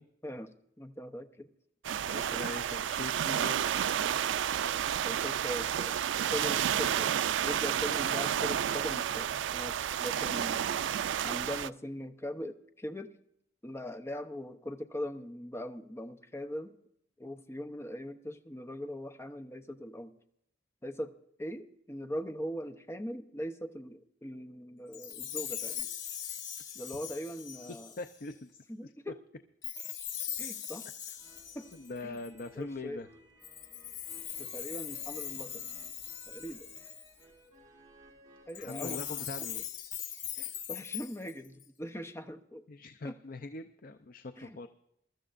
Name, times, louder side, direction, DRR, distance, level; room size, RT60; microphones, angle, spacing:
voice 1, 0.2-1.5 2.0-2.5 5.0-10.6 11.2-13.1 13.6-16.8 17.2-20.1 20.8-25.9 26.7-27.9 28.7-29.2 30.4-30.9 31.5-31.7 32.0-32.2 32.6-33.0 34.4-35.7 36.3-36.7 38.5-39.1 39.4-39.5 40.4-42.6 43.0-43.2 44.4-44.6, equal, 15° left, 8 dB, 0.7 m, -41 dB
sound 1, 1.8-11.7, right 9 dB, 85° right, 0.3 m, -31 dB
voice 2, 2.1-4.2 27.7-28.9 31.7-33.1 38.6-39.6 42.7-44.7, left 3 dB, 50° left, 8 dB, 0.6 m, -42 dB
Chime, 24.9-28.3 29.6-32.5 33.4-37.2 38.5-41.6, left 10 dB, 85° left, 1.6 m, -40 dB
sound 2, 31.2-39.4, right 1 dB, 20° right, 3.2 m, -59 dB
22.5 x 13.0 x 2.5 m, 0.78 s
head